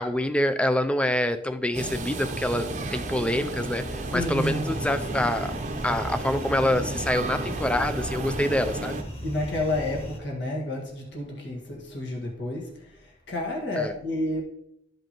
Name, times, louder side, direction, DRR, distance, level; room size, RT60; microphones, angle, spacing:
voice 1, 0.0-5.5 5.8-9.0 13.8-13.9, left 1 dB, 5° left, 0.4 m, -26 dB
sound 1, 1.7-9.0, right 2 dB, 40° right, 0.7 m, -33 dB
voice 2, 4.1-4.9 9.2-14.4, left 1 dB, 65° left, 1.8 m, -30 dB
sound 2, 4.6-10.2, equal, 35° left, 1.2 m, -38 dB
12.5 x 5.3 x 3.0 m
head